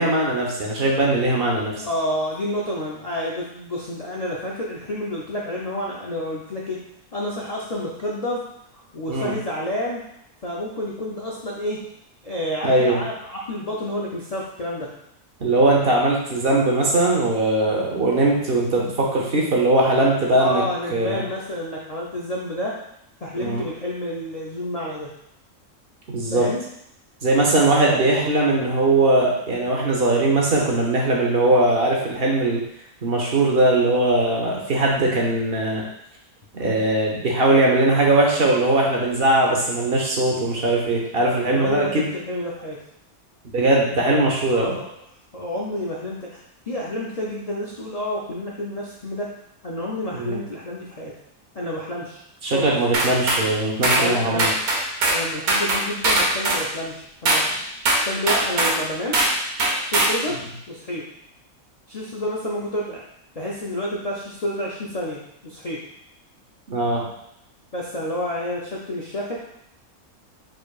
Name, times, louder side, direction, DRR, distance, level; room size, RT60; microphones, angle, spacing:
voice 1, 0.0-1.8 9.1-9.3 12.6-13.0 15.4-20.6 20.9-21.2 23.4-23.6 26.1-26.5 27.2-32.6 33.0-35.8 36.5-42.1 43.5-44.8 50.1-50.4 52.4-54.5 66.7-67.1, right 2 dB, 45° right, -1 dB, 0.9 m, -20 dB
voice 2, 1.8-6.8 7.1-8.4 8.7-10.0 10.4-11.8 12.2-14.9 20.4-22.7 23.2-25.1 26.3-26.6 27.8-28.1 41.5-42.8 44.5-44.9 45.3-49.3 49.6-51.1 51.5-52.7 53.9-54.5 55.1-57.6 58.0-59.2 59.8-60.4 60.7-61.1 61.9-63.0 63.4-65.8 67.7-69.3, left 1 dB, 90° left, -4 dB, 0.3 m, -29 dB
sound 1, 52.9-53.4 53.8-54.1 54.4-55.2 55.5-56.6 57.2-57.5 57.8-58.8 59.1-59.3 59.6-60.2, right 2 dB, 80° right, 1.4 m, -20 dB
4.7 x 4.5 x 2.4 m, 0.76 s
omnidirectional pair, 1.6 m